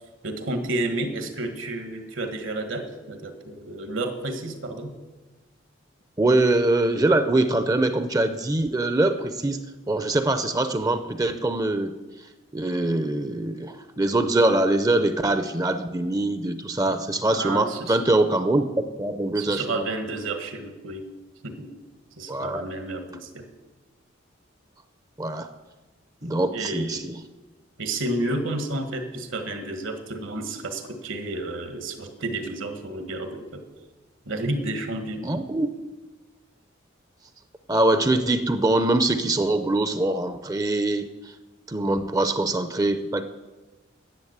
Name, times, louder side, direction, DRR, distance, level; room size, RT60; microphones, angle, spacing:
voice 1, 0.2-4.9 17.3-18.0 19.3-21.0 21.4-21.7 22.2-23.4 26.2-27.1 27.8-33.6 34.2-35.3, right 2 dB, 75° right, 7 dB, 1.5 m, -31 dB
voice 2, 6.2-11.9 12.5-18.6 19.0-19.9 22.3-22.6 25.2-25.5 26.2-27.2 35.2-35.7 37.7-41.3 41.7-43.2, right 2 dB, 20° right, 10 dB, 0.5 m, -23 dB
10.5 x 7.4 x 8.0 m, 1.2 s
head